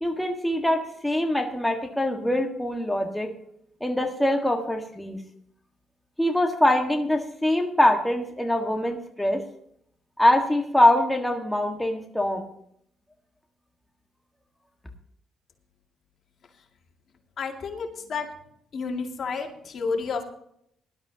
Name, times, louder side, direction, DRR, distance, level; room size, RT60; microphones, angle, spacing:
voice 1, 0.0-3.3 3.8-5.2 6.2-9.4 10.2-12.5, left 1 dB, 5° left, 2 dB, 1.6 m, -23 dB
voice 2, 17.4-18.3 18.7-20.2, left 4 dB, 55° left, 2 dB, 2.3 m, -30 dB
18.5 x 12.0 x 2.9 m, 0.70 s
cardioid pair, 90°, 0 cm